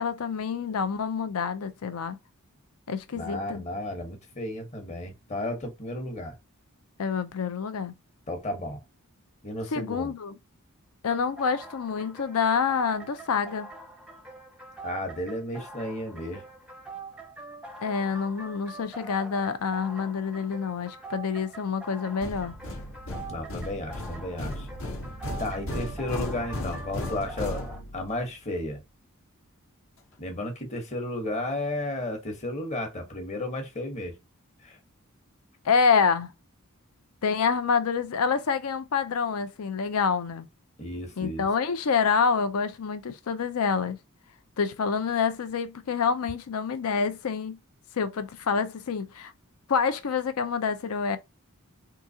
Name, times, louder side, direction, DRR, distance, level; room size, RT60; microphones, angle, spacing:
voice 1, 0.0-2.2 2.9-3.6 7.0-7.9 9.7-10.4 11.0-13.7 17.8-22.6 35.6-36.3 37.2-40.5 41.2-44.0 44.6-47.6 48.0-49.3 49.7-51.2, left 5 dB, 75° left, 0.5 m, -27 dB
voice 2, 3.1-6.4 8.3-8.8 9.4-10.1 14.8-16.4 23.3-24.7 25.4-28.8 30.2-34.1 34.6-34.8 40.8-41.5, left 1 dB, 30° left, 1.0 m, -33 dB
sound 1, 11.1-27.8, right 3 dB, 5° right, 0.5 m, -44 dB
sound 2, 22.2-28.2, left 1 dB, 60° left, 0.9 m, -36 dB
3.7 x 2.8 x 2.7 m
head